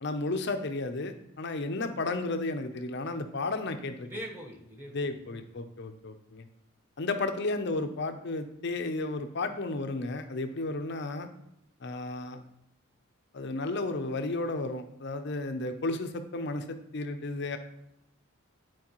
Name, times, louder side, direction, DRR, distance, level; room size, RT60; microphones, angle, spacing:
voice 1, 0.0-4.1 4.9-6.4 7.0-11.3 11.8-12.4 13.3-17.6, left 2 dB, 50° left, 7 dB, 0.6 m, -33 dB
voice 2, 4.0-5.4, equal, 10° right, -1 dB, 1.1 m, -43 dB
9.6 x 4.5 x 3.0 m, 0.79 s
head